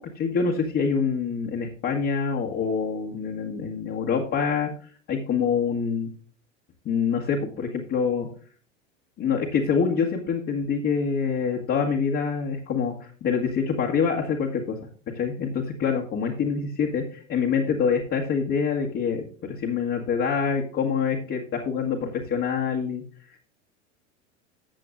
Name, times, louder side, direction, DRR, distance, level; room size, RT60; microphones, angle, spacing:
voice 1, 0.1-4.7 5.1-6.1 6.8-8.3 9.2-14.8 15.1-23.0, left 6 dB, 35° left, -2 dB, 1.7 m, -26 dB
14.0 x 7.5 x 2.5 m, 0.44 s
hypercardioid pair, 90°, 38 cm